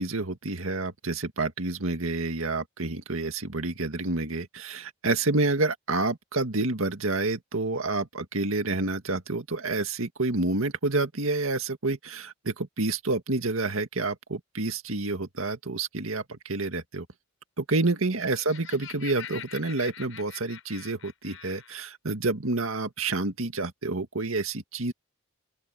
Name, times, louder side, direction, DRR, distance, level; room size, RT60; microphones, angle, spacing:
voice 1, 0.0-17.1 17.6-24.9, right 2 dB, 80° right, 2.0 m, -29 dB
Laughter, 18.0-21.8, left 9 dB, 75° left, 5.7 m, -44 dB
open air
head